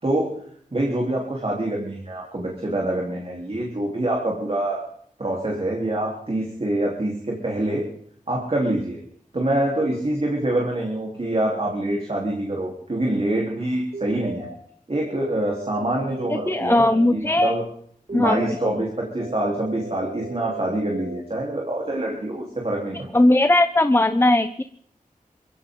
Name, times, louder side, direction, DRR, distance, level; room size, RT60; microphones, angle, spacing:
voice 1, 0.0-0.3 0.7-4.8 5.2-7.8 8.3-9.0 9.3-14.5 14.9-17.6 18.1-23.2, right 1 dB, 45° right, -2 dB, 4.0 m, -25 dB
sound 1, 13.9-14.5 15.1-17.1 18.1-18.7 19.2-21.2, right 2 dB, 60° right, 6.4 m, -37 dB
voice 2, 16.3-17.6 18.1-18.5 23.1-24.6, left 1 dB, 15° left, 10 dB, 0.9 m, -18 dB
22.0 x 16.0 x 4.0 m, 0.63 s
cardioid pair, 50°, 15 cm